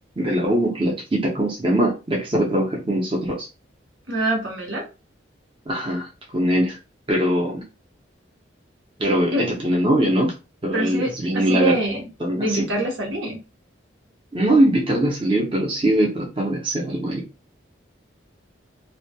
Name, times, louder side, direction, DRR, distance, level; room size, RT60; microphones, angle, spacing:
voice 1, 0.2-3.5 5.7-6.1 6.3-6.8 7.1-7.6 9.0-10.3 10.6-11.8 12.2-12.7 14.3-17.2, right 1 dB, 25° right, -2 dB, 0.6 m, -21 dB
voice 2, 4.1-4.9 9.3-9.5 10.7-12.1 12.4-13.4, right 1 dB, 80° right, 0 dB, 0.9 m, -24 dB
2.2 x 2.1 x 2.7 m, 0.30 s
head